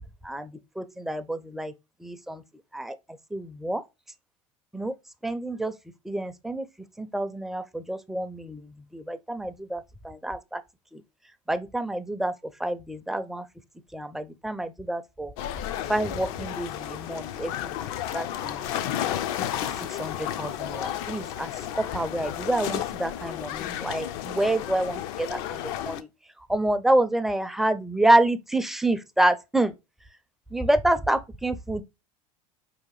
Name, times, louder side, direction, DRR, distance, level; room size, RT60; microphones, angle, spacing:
voice 1, 0.2-1.7 2.0-2.4 2.7-3.8 4.7-5.0 5.2-5.7 6.0-6.7 7.0-10.6 10.9-11.0 11.5-13.5 13.9-15.3 15.9-17.8 18.1-18.6 19.8-26.1 26.5-29.7 30.5-31.8, right 1 dB, ahead, 0.4 m, -28 dB
sound 1, 15.4-26.0, left 11 dB, 60° left, 0.4 m, -32 dB
4.5 x 2.8 x 3.0 m
hypercardioid pair, 80°, 18 cm